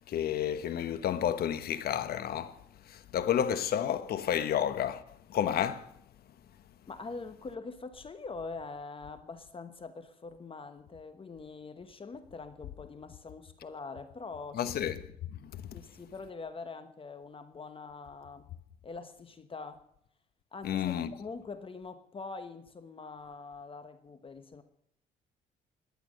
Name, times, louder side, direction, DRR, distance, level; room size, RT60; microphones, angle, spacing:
voice 1, 0.1-2.6 2.9-5.0 5.3-5.9 14.5-15.0 15.4-15.6 20.6-21.1, left 9 dB, 70° left, 1.1 m, -31 dB
voice 2, 6.9-14.6 15.7-18.5 18.8-19.8 20.5-24.6, left 4 dB, 35° left, 1.2 m, -44 dB
17.5 x 10.5 x 6.5 m
cardioid pair, 95°, 17 cm